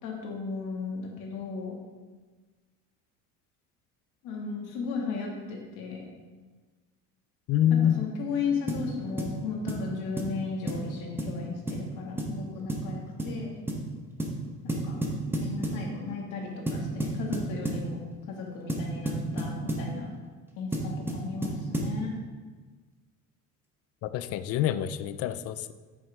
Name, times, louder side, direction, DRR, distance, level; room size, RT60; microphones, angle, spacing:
voice 1, 0.0-1.8 4.2-6.1 7.7-13.5 14.6-15.0 15.3-18.0 18.3-20.1 20.6-22.1, left 5 dB, 80° left, -1 dB, 2.0 m, -35 dB
voice 2, 7.5-8.1 24.0-25.7, left 10 dB, 50° left, 13 dB, 0.4 m, -26 dB
sound 1, 8.7-8.9 9.2-9.4 9.7-9.9 10.2-10.3 10.7-10.9 11.2-11.4 11.7-11.8 12.2-12.4 12.7-12.9 13.2-13.4 13.7-13.8 14.2-14.4 14.7-15.8 16.7-17.9 18.7-19.9 20.7-22.0, right 1 dB, 5° right, 0.9 m, -31 dB
8.8 x 6.3 x 3.5 m, 1.4 s
cardioid pair, 150°, 31 cm